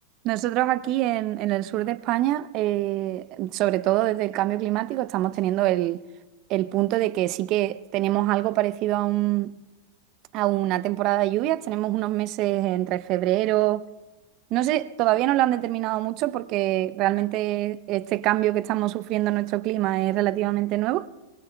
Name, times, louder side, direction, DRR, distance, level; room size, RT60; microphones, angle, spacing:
voice 1, 0.2-6.0 6.5-9.5 10.3-13.8 14.5-21.1, right 16 dB, 45° right, 0.5 m, -24 dB
24.0 x 22.5 x 2.2 m
hypercardioid pair, 100°, 0 cm